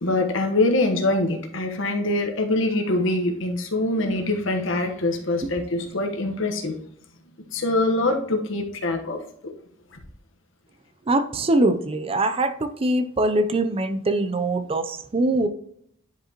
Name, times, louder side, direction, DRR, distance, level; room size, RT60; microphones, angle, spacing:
voice 1, 0.0-6.7 7.5-9.2 9.4-9.5 13.2-13.4, left 2 dB, 65° left, 3 dB, 1.2 m, -24 dB
voice 2, 11.1-15.5, right 2 dB, 25° right, 9 dB, 0.5 m, -23 dB
10.0 x 5.0 x 2.9 m, 0.69 s
head